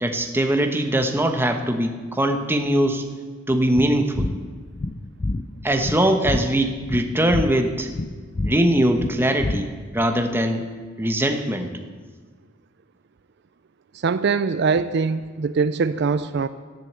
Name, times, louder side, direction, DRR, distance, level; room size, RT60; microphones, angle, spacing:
voice 1, 0.0-3.0 3.5-4.3 5.6-7.9 8.4-10.6 11.0-11.7, right 1 dB, 10° right, 5 dB, 1.0 m, -21 dB
sound 1, 3.7-10.0, left 2 dB, 30° left, 0.5 m, -29 dB
voice 2, 13.9-16.5, right 5 dB, 55° right, 13 dB, 0.4 m, -22 dB
12.5 x 10.5 x 8.1 m, 1.5 s
head